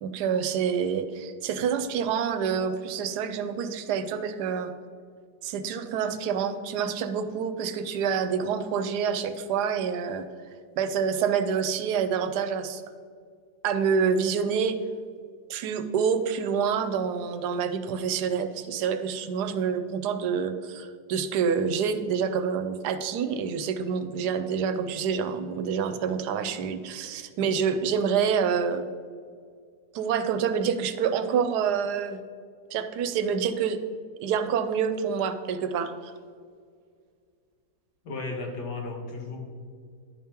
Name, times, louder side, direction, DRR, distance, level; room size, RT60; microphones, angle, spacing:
voice 1, 0.0-4.7 5.4-10.2 10.8-12.8 13.6-14.8 15.5-28.9 29.9-32.2 32.7-33.8 34.2-36.1, right 6 dB, 85° right, 9 dB, 1.2 m, -27 dB
voice 2, 38.0-39.4, left 3 dB, 85° left, 0 dB, 1.9 m, -34 dB
10.5 x 3.6 x 4.3 m, 2.1 s
omnidirectional pair, 1.7 m